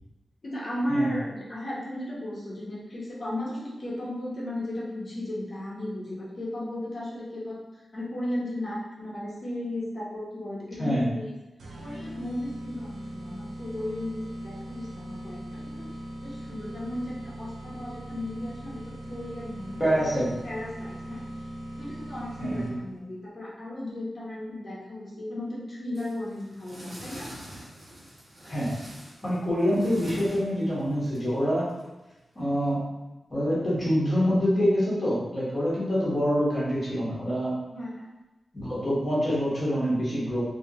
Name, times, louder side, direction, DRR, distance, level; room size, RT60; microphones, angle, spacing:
voice 1, 0.4-7.6 7.9-11.3 11.8-15.9 16.2-21.2 21.7-27.3 37.7-38.0, left 1 dB, 40° left, -6 dB, 1.0 m, -35 dB
sound 1, 11.6-23.0, right 1 dB, 90° right, 0.6 m, -40 dB
voice 2, 19.8-20.3 22.4-22.8 28.5-28.7 29.2-31.7 32.3-32.8 33.3-37.5 38.5-40.4, equal, 20° left, -8 dB, 1.3 m, -26 dB
sound 2, 26.0-32.7, equal, 35° right, 1.4 m, -45 dB
3.5 x 2.8 x 2.8 m, 1.1 s
wide cardioid pair, 165°, 0 cm